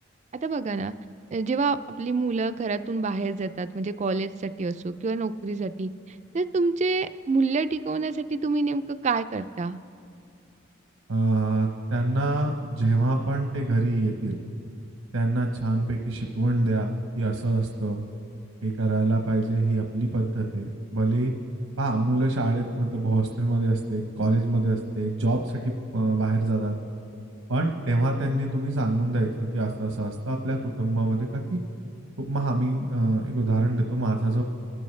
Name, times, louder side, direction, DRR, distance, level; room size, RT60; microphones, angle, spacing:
voice 1, 0.4-0.9 1.3-5.9 6.3-9.8, right 3 dB, 35° right, 12 dB, 0.3 m, -27 dB
voice 2, 11.1-14.4 15.1-18.0 18.6-21.3 21.8-26.8 27.5-31.6 32.2-34.4, right 2 dB, 90° right, 2 dB, 0.9 m, -25 dB
26.0 x 12.5 x 3.2 m, 2.6 s
head